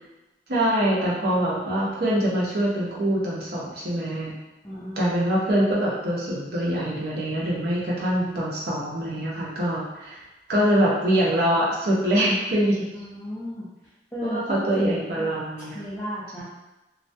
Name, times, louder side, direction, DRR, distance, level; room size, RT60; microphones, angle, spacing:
voice 1, 0.5-4.3 5.0-10.2 10.5-12.9 14.2-15.8 16.4-16.5, right 1 dB, 60° right, -5 dB, 0.7 m, -24 dB
voice 2, 4.6-5.2 12.9-13.7 14.1-15.3 15.7-16.4, equal, 15° left, -10 dB, 0.4 m, -34 dB
2.3 x 2.1 x 2.5 m, 1.0 s
head